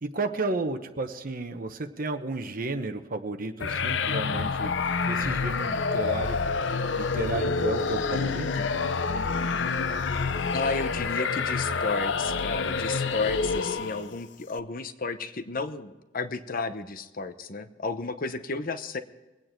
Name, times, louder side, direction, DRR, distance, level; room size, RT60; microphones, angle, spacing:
voice 1, 0.0-4.7 5.1-6.4 6.9-8.7, right 2 dB, 50° right, 7 dB, 0.9 m, -32 dB
sound 1, 3.6-14.2, left 4 dB, 70° left, 0.7 m, -28 dB
voice 2, 10.5-19.0, left 4 dB, 50° left, 10 dB, 0.9 m, -32 dB
23.0 x 9.0 x 4.6 m, 1.2 s
head